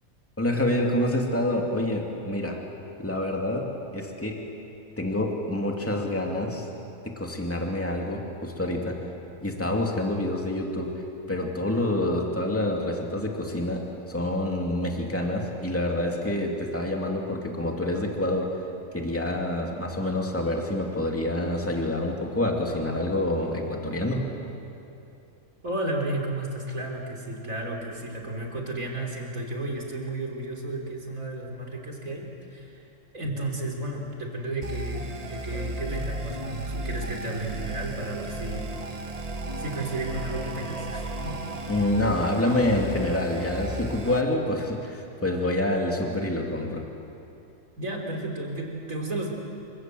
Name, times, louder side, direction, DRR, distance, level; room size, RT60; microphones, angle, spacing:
voice 1, 0.4-2.6 3.0-4.4 5.0-6.7 7.0-9.0 9.4-10.9 11.3-18.5 18.9-24.2 41.7-46.8, left 1 dB, 10° left, 0 dB, 2.6 m, -27 dB
voice 2, 25.6-32.8 33.1-38.7 39.6-41.4 47.8-49.3, right 2 dB, 70° right, 0 dB, 4.1 m, -33 dB
sound 1, 34.6-44.2, right 2 dB, 30° right, 1.3 m, -35 dB
27.5 x 25.5 x 7.8 m, 2.8 s
omnidirectional pair, 1.5 m